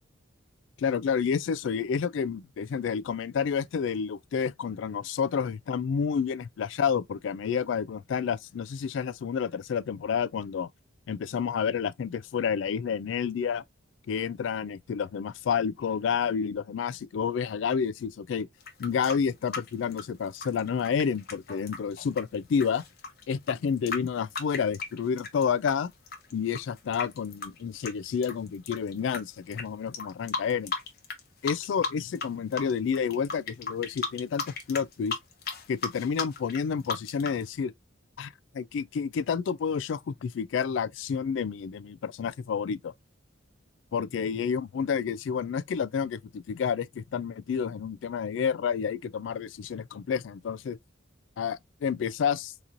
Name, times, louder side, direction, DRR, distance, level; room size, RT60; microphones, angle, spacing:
voice 1, 0.8-10.7 11.1-13.6 14.1-18.5 18.8-22.8 23.3-25.9 26.3-30.7 31.4-35.2 35.7-37.7 38.2-42.9 43.9-50.8 51.4-52.5, left 6 dB, 75° left, 0.3 m, -29 dB
sound 1, 18.6-25.7 26.1-29.2 29.5-29.6 29.9-31.2 31.5-32.3 32.5-37.4, left 4 dB, 50° left, 0.9 m, -35 dB
4.0 x 2.9 x 2.5 m
head